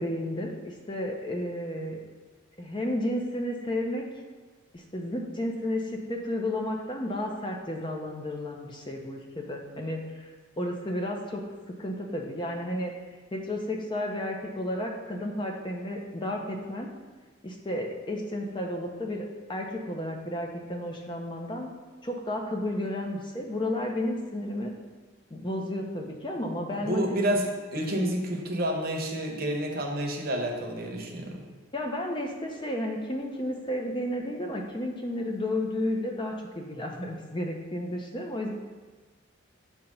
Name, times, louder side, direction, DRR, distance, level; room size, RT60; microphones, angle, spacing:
voice 1, 0.0-2.0 2.6-4.0 4.7-10.3 10.6-11.4 11.8-12.9 13.3-16.9 17.4-21.7 22.0-24.7 25.3-27.0 31.7-38.5, left 1 dB, 25° left, 1 dB, 0.6 m, -32 dB
voice 2, 26.8-31.4, right 1 dB, 50° right, 1 dB, 0.9 m, -29 dB
7.2 x 2.9 x 5.3 m, 1.4 s
head